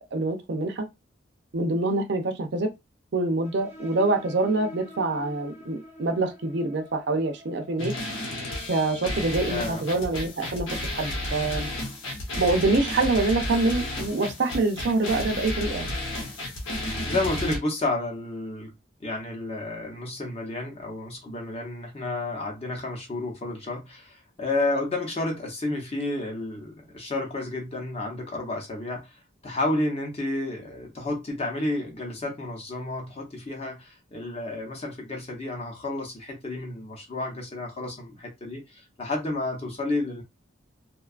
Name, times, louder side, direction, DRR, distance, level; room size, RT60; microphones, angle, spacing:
voice 1, 0.1-0.9 1.5-2.7 3.1-7.9 8.7-11.7 12.4-15.9, right 2 dB, 55° right, 0.5 m, -25 dB
sound 1, 3.4-10.7, left 1 dB, 10° right, 0.6 m, -47 dB
sound 2, 7.8-17.6, left 1 dB, 75° left, 0.9 m, -32 dB
voice 2, 9.5-9.8 17.0-18.7 19.0-40.2, left 2 dB, 30° left, 0.7 m, -31 dB
2.6 x 2.3 x 2.4 m
head